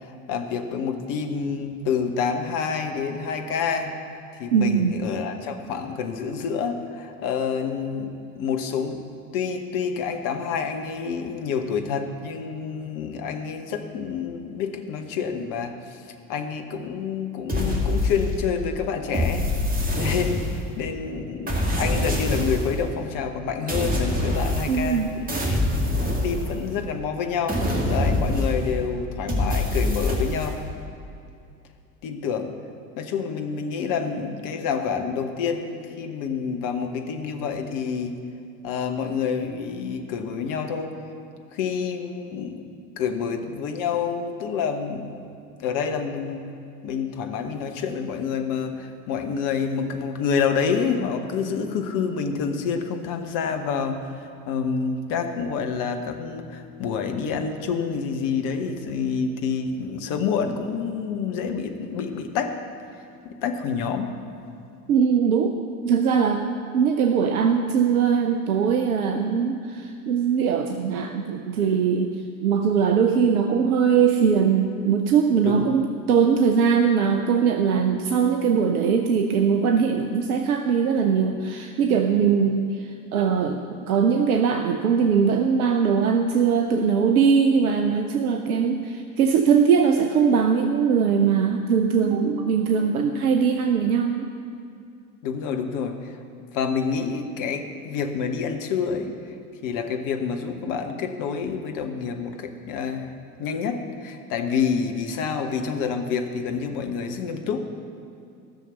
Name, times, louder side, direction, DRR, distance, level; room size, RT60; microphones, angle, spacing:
voice 1, 0.3-3.9 4.4-9.0 9.3-16.0 16.3-19.5 19.9-25.0 25.5-27.6 27.9-30.6 32.0-32.5 33.0-38.2 38.6-40.9 41.5-42.6 43.0-45.3 45.6-46.5 46.8-54.2 54.5-62.5 63.2-64.2 75.4-75.7 82.2-82.3 95.2-96.2 96.5-99.2 99.6-103.1 103.4-107.6, left 6 dB, 45° left, 6 dB, 1.2 m, -28 dB
voice 2, 4.5-4.9 24.7-25.1 64.9-65.5 65.8-66.4 66.7-72.2 72.4-94.3, right 6 dB, 70° right, 5 dB, 0.7 m, -21 dB
sound 1, 17.5-18.6 19.1-20.8 21.5-22.8 23.7-25.0 25.3-26.9 27.5-28.8 29.3-30.5, left 1 dB, 20° right, 2.2 m, -25 dB
14.5 x 6.5 x 7.0 m, 2.5 s
figure-of-eight pair, 70°, 46 cm